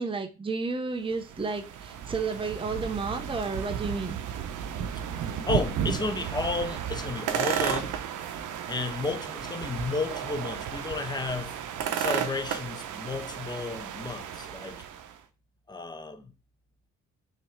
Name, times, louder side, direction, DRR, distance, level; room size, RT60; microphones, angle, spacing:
voice 1, 0.0-4.2, right 4 dB, 15° right, 0.9 m, -32 dB
sound 1, 1.1-15.2, right 9 dB, 80° right, 0.9 m, -33 dB
voice 2, 5.5-8.0 8.7-11.5 11.9-14.8 15.7-16.2, left 3 dB, 15° left, 1.1 m, -32 dB
6.7 x 3.1 x 4.6 m
cardioid pair, 90°, 30 cm